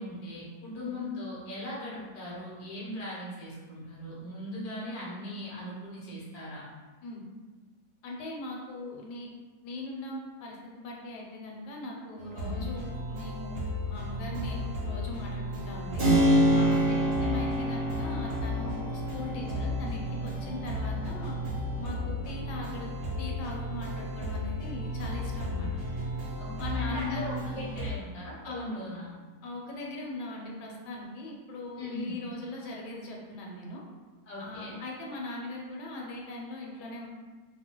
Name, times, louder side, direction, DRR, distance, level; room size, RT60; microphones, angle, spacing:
voice 1, 0.0-6.7 12.4-12.7 16.6-17.1 20.4-20.6 26.4-29.1 31.8-32.2 34.3-34.8, left 1 dB, 55° left, -7 dB, 0.4 m, -39 dB
voice 2, 8.0-9.3 9.6-16.1 16.5-16.9 17.2-21.3 21.8-22.9 23.2-25.7 26.6-27.2 28.4-28.8 29.4-33.8 34.4-37.1, left 2 dB, 75° left, -1 dB, 1.1 m, -40 dB
sound 1, 12.2-27.9, left 1 dB, 75° right, 1.3 m, -34 dB
Keyboard (musical), 16.0-24.5, equal, 55° right, 0.6 m, -29 dB
2.9 x 2.1 x 2.9 m, 1.3 s
omnidirectional pair, 1.8 m